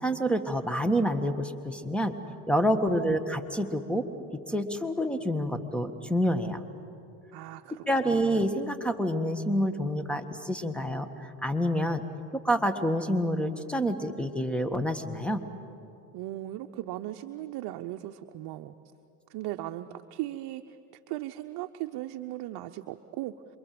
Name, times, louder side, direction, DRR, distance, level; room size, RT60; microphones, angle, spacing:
voice 1, 0.0-2.2 2.5-4.1 4.5-6.6 7.7-12.0 12.3-15.4, equal, ahead, 9 dB, 1.7 m, -28 dB
voice 2, 2.9-3.2 7.3-7.8 8.1-8.4 16.1-18.7 19.3-20.8 21.1-23.6, right 15 dB, 55° right, 6 dB, 0.9 m, -37 dB
28.0 x 23.5 x 7.8 m, 2.7 s
supercardioid pair, 90°, 45 cm